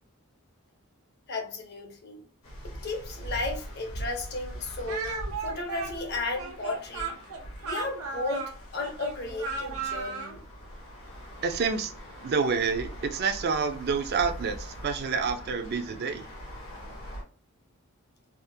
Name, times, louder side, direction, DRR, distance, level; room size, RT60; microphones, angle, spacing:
voice 1, 1.3-2.2 2.6-7.2 7.6-10.4, left 2 dB, 50° left, 0.7 m, -34 dB
sound 1, 2.4-17.2, equal, 65° left, 1.1 m, -42 dB
Speech, 4.9-10.4, right 4 dB, 85° right, 0.7 m, -35 dB
voice 2, 11.4-11.9 12.2-16.3, right 5 dB, 45° right, 0.4 m, -28 dB
3.5 x 2.0 x 2.6 m
head